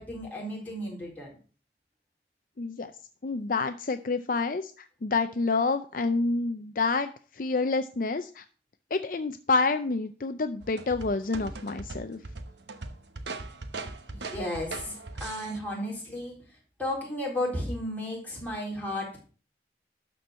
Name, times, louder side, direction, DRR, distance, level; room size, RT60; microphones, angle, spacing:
voice 1, 0.0-1.3 14.1-16.3 16.8-19.2, left 1 dB, 10° left, -4 dB, 3.9 m, -34 dB
voice 2, 2.6-2.9 3.2-8.4 8.9-12.2, left 3 dB, 50° left, 9 dB, 0.5 m, -28 dB
sound 1, 10.6-15.6, right 3 dB, 80° right, 1.0 m, -40 dB
12.0 x 4.6 x 6.3 m, 0.39 s
head